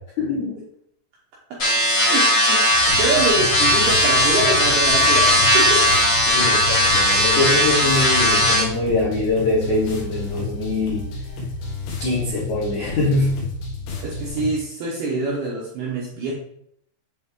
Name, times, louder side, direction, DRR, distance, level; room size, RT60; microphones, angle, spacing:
voice 1, 0.2-0.6 6.3-11.1 12.0-13.4, left 2 dB, 85° left, -7 dB, 1.6 m, -23 dB
sound 1, 1.6-8.6, left 1 dB, 35° left, 1.9 m, -17 dB
voice 2, 1.9-2.7 2.9-5.9 14.0-16.3, right 3 dB, 75° right, -4 dB, 2.3 m, -25 dB
sound 2, 2.7-14.5, left 3 dB, 65° left, 3.1 m, -31 dB
8.3 x 3.4 x 3.6 m, 0.70 s
omnidirectional pair, 5.9 m